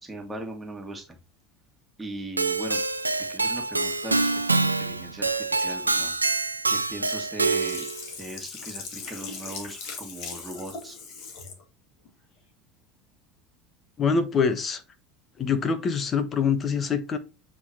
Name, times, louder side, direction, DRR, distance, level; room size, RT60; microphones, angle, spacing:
voice 1, 0.0-1.2 2.0-2.8 3.3-6.1 6.7-7.9 8.2-11.0, right 1 dB, 15° right, 2 dB, 1.9 m, -39 dB
Keyboard (musical), 2.4-8.0, right 3 dB, 85° right, 0.4 m, -26 dB
Sink (filling or washing), 7.4-11.6 12.1-12.2, left 5 dB, 50° left, 2.3 m, -39 dB
voice 2, 14.0-14.8 15.4-17.2, left 5 dB, 30° left, 11 dB, 1.2 m, -24 dB
8.6 x 3.9 x 2.9 m, 0.27 s
figure-of-eight pair, 70°, 0 cm